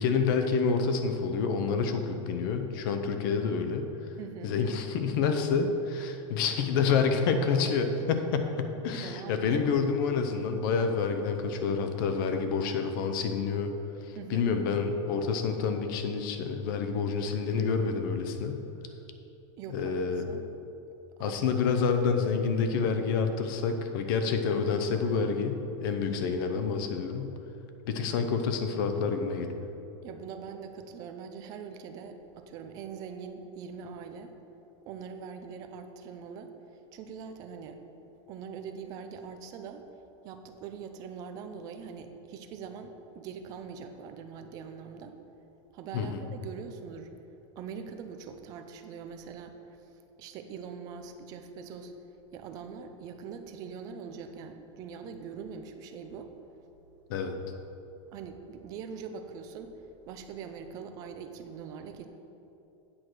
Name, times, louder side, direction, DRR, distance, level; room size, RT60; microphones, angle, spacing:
voice 1, 0.0-3.9 4.4-13.7 14.0-18.6 19.7-20.2 21.2-27.3 27.8-29.6 45.9-46.3 57.1-57.4, left 5 dB, 45° left, 6 dB, 0.7 m, -28 dB
voice 2, 4.2-4.5 9.0-9.5 14.2-14.5 19.6-20.5 21.2-21.6 25.9-26.2 30.0-34.3 34.9-37.8 38.3-39.9 40.2-45.2 45.7-47.1 47.6-49.9 50.2-51.9 52.3-56.3 58.1-59.7 60.1-62.1, right 6 dB, 25° right, 7 dB, 0.4 m, -43 dB
8.7 x 4.8 x 6.1 m, 2.9 s
supercardioid pair, 180°, 16 cm